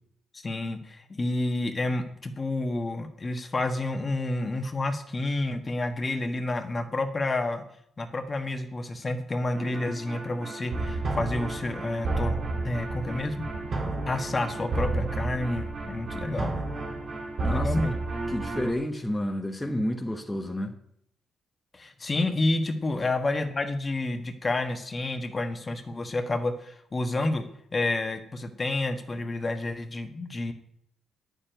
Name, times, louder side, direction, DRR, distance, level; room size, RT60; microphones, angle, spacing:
voice 1, 0.3-7.6 8.0-12.4 12.6-13.5 14.1-16.5 17.5-17.9 21.7-27.4 27.7-30.5, left 2 dB, 30° left, 1.4 m, -29 dB
sound 1, 9.5-18.7, right 2 dB, 50° right, 2.6 m, -31 dB
voice 2, 17.4-17.8 18.3-20.7, left 1 dB, 10° left, 1.2 m, -30 dB
9.8 x 7.1 x 9.1 m
cardioid pair, 90°, 0 cm